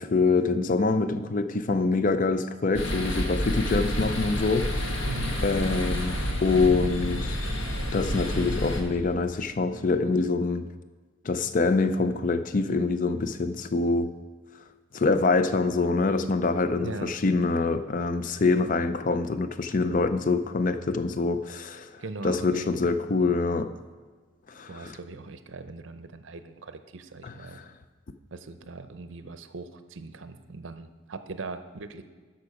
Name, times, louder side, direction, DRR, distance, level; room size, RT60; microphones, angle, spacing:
voice 1, 0.0-4.8 5.4-7.4 7.9-10.7 11.2-14.1 14.9-21.9 22.2-23.7 24.5-25.0 27.2-27.7, left 3 dB, 40° left, 11 dB, 0.5 m, -25 dB
sound 1, 2.7-8.8, equal, 65° left, 1.3 m, -29 dB
voice 2, 5.1-5.4 16.8-17.2 22.0-22.9 24.7-27.6 28.3-32.0, right 3 dB, 65° right, 10 dB, 0.6 m, -40 dB
13.0 x 5.9 x 4.8 m, 1.4 s
head